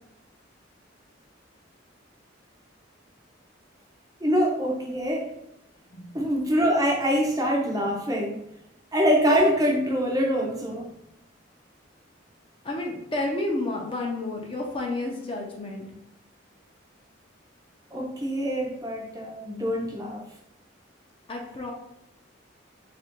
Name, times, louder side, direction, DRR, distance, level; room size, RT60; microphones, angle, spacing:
voice 1, 4.2-5.3 6.1-8.4 8.9-10.9 17.9-20.2, equal, 20° right, -1 dB, 0.5 m, -24 dB
voice 2, 12.6-15.9 21.3-21.7, left 2 dB, 30° left, 0 dB, 0.6 m, -30 dB
2.9 x 2.5 x 4.4 m, 0.82 s
head